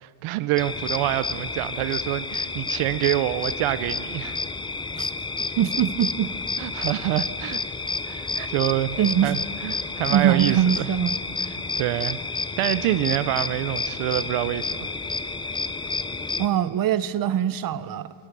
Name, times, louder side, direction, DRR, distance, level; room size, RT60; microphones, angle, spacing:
voice 1, 0.0-4.4 6.6-7.6 8.0-10.9 11.5-12.2 12.6-14.9, right 15 dB, 75° right, 15 dB, 0.7 m, -26 dB
sound 1, 0.6-16.5, left 3 dB, 10° left, 0.4 m, -30 dB
voice 2, 5.6-6.3 8.4-8.5 9.0-9.4 10.1-11.2 16.4-18.1, right 10 dB, 45° right, 16 dB, 0.7 m, -22 dB
25.5 x 19.5 x 6.1 m, 2.7 s
cardioid pair, 145°, 49 cm